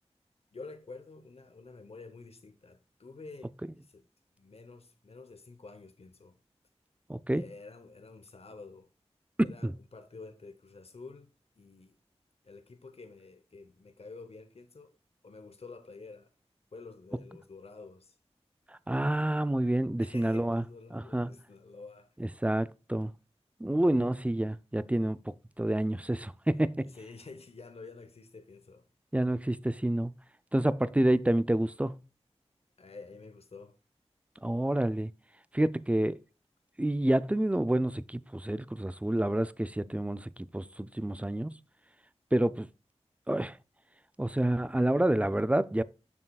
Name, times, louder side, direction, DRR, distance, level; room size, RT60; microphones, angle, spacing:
voice 1, 0.5-4.0 4.4-6.4 7.3-8.9 9.4-11.9 12.4-15.0 15.2-16.3 16.7-18.1 20.0-22.2 26.8-28.9 32.8-33.8, left 3 dB, 65° left, 0.9 m, -49 dB
voice 2, 7.1-7.4 9.4-9.7 18.9-20.6 20.9-21.3 22.2-23.1 23.6-26.9 29.1-30.1 30.5-32.0 34.4-35.1 35.5-36.2 36.8-41.5 42.3-42.7 43.3-43.6 44.2-45.8, right 1 dB, 10° right, 0.4 m, -28 dB
7.2 x 6.5 x 2.3 m
wide cardioid pair, 50°, 11 cm